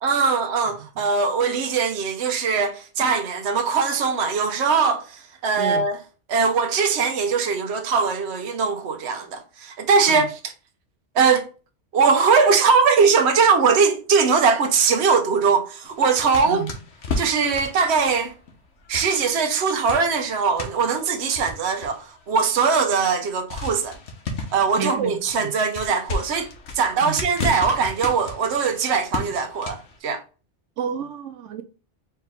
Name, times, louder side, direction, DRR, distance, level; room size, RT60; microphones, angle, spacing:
voice 1, 0.0-6.0 6.3-10.4 11.1-11.5 11.9-16.7 17.2-18.3 18.9-24.0 24.5-26.5 26.7-30.2, right 5 dB, 65° right, 1.0 m, -21 dB
sound 1, 15.8-19.6 19.9-22.3 22.8-22.9 23.5-30.0, left 2 dB, 80° left, 1.3 m, -34 dB
voice 2, 24.8-25.5 27.0-27.2 30.8-31.6, right 6 dB, 90° right, 1.0 m, -30 dB
4.4 x 3.3 x 3.3 m
omnidirectional pair, 1.2 m